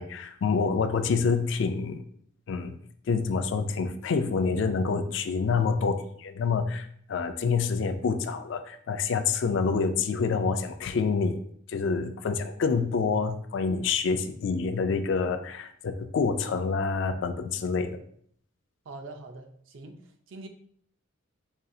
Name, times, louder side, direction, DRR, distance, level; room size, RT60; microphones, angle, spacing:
voice 1, 0.0-2.0 2.5-2.8 3.1-11.4 11.7-18.0, left 5 dB, 60° left, 8 dB, 0.3 m, -27 dB
voice 2, 18.9-20.5, right 2 dB, 65° right, 5 dB, 0.5 m, -44 dB
5.1 x 2.4 x 2.6 m, 0.64 s
head